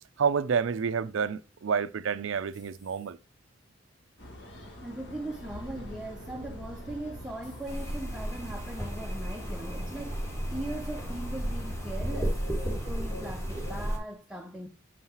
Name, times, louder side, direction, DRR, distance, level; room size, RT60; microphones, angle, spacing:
voice 1, 0.2-3.2, right 6 dB, 80° right, 0.4 m, -29 dB
sound 1, 1.5-3.4 4.0-4.5 6.5-6.9 7.4-8.0 8.8-9.1 9.5-9.6 11.5-11.9 12.2-12.8, left 3 dB, 90° left, 3.3 m, -61 dB
sound 2, 4.2-14.0, equal, 60° left, 1.8 m, -44 dB
voice 2, 4.8-14.7, right 1 dB, 5° right, 0.6 m, -40 dB
sound 3, 7.7-14.0, equal, 15° left, 1.7 m, -33 dB
7.2 x 5.5 x 2.9 m
head